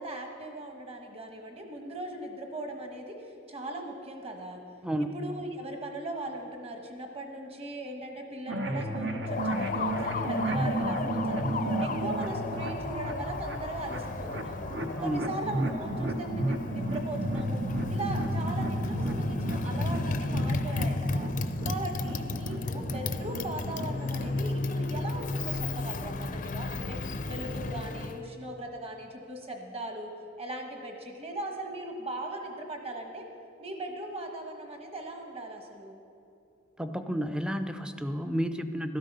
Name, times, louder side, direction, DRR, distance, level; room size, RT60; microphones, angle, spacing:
voice 1, 0.0-3.2 3.5-4.6 5.1-11.4 11.8-14.7 15.0-17.6 17.9-21.3 21.6-27.0 27.3-30.1 30.4-33.2 33.6-36.0, right 1 dB, 30° right, 3 dB, 1.3 m, -39 dB
voice 2, 4.8-5.2 15.0-15.2 36.8-39.0, equal, 5° right, 8 dB, 0.5 m, -31 dB
sound 1, 8.5-24.4, right 1 dB, 65° right, 1.0 m, -33 dB
Motorcycle, 9.2-28.2, left 3 dB, 45° left, 0.5 m, -34 dB
13.0 x 12.5 x 5.4 m, 2.5 s
head